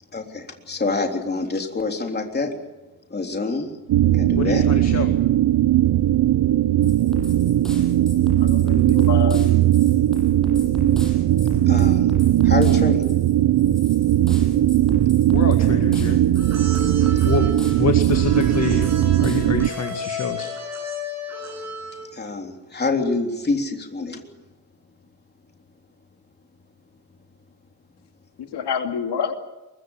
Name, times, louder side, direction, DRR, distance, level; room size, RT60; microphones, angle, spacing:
voice 1, 0.1-2.5 3.1-3.7 4.1-4.6 11.7-12.1 12.4-13.1 17.2-17.4 22.1-24.2, left 3 dB, 25° left, 3 dB, 3.5 m, -26 dB
sound 1, 3.9-19.7, right 13 dB, 75° right, 0.7 m, -18 dB
voice 2, 4.4-5.1 15.3-16.2 17.2-17.5 17.8-18.9 19.2-20.5, left 5 dB, 40° left, 4 dB, 2.0 m, -26 dB
sound 2, 6.8-20.0, equal, ahead, 7.7 m, -35 dB
voice 3, 8.4-9.4 28.4-29.4, left 7 dB, 75° left, 5 dB, 2.6 m, -27 dB
sound 3, 16.3-22.2, left 2 dB, 40° right, 8.0 m, -34 dB
23.5 x 22.0 x 7.3 m, 1.1 s
wide cardioid pair, 150°, 40 cm